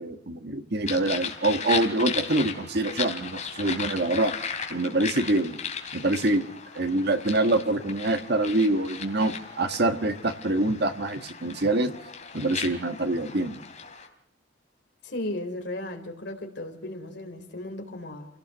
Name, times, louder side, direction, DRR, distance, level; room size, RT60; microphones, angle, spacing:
voice 1, 0.0-4.3 4.7-5.6 5.9-6.5 6.7-11.9 12.3-13.6, right 2 dB, 55° right, 8 dB, 1.6 m, -25 dB
sound 1, 0.9-14.1, left 6 dB, 35° left, 3.1 m, -36 dB
voice 2, 15.0-18.3, left 1 dB, 55° left, 4 dB, 3.6 m, -35 dB
28.0 x 17.5 x 6.7 m, 0.77 s
head